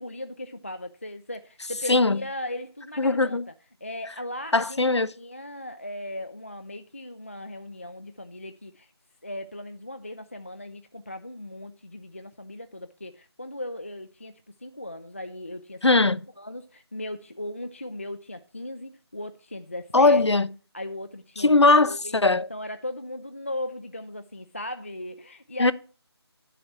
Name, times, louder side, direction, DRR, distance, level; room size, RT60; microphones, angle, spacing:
voice 1, 0.0-3.5 3.8-4.8 5.1-8.9 9.2-15.8 16.4-20.2 20.7-25.7, left 1 dB, 30° left, 0.3 m, -37 dB
voice 2, 1.9-2.2 3.0-3.4 4.5-5.1 15.8-16.2 19.9-20.5 21.4-22.5 25.6-25.7, left 3 dB, 80° left, 0.6 m, -19 dB
9.5 x 7.9 x 4.3 m
figure-of-eight pair, 160°, 14 cm